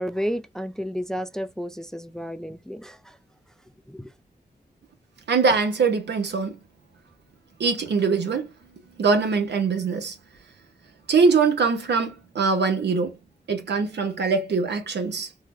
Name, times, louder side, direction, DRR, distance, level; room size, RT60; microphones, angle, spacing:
voice 1, 0.0-3.2 3.9-4.1, equal, 5° left, 0.4 m, -31 dB
voice 2, 5.3-6.6 7.6-8.5 9.0-10.2 11.1-13.1 13.5-15.3, right 4 dB, 80° right, 0.9 m, -22 dB
3.7 x 2.2 x 3.1 m
cardioid pair, 55°, 17 cm